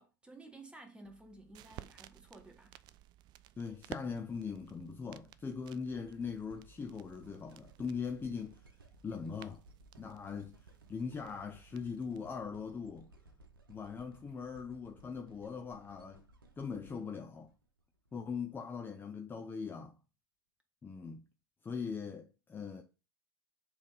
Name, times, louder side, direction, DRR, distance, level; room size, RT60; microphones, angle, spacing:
voice 1, 0.0-2.8, right 2 dB, 10° right, 1.5 m, -54 dB
sound 1, 1.0-12.3, right 13 dB, 40° right, 0.4 m, -55 dB
voice 2, 3.6-8.6 9.0-9.6 10.0-10.6 10.9-13.1 13.7-16.2 16.6-17.5 18.1-20.0 20.8-21.2 21.6-22.8, left 5 dB, 20° left, 0.7 m, -41 dB
sound 2, 5.9-18.1 18.7-18.8, right 2 dB, 90° right, 0.9 m, -61 dB
7.3 x 3.5 x 3.8 m
hypercardioid pair, 90°, 11 cm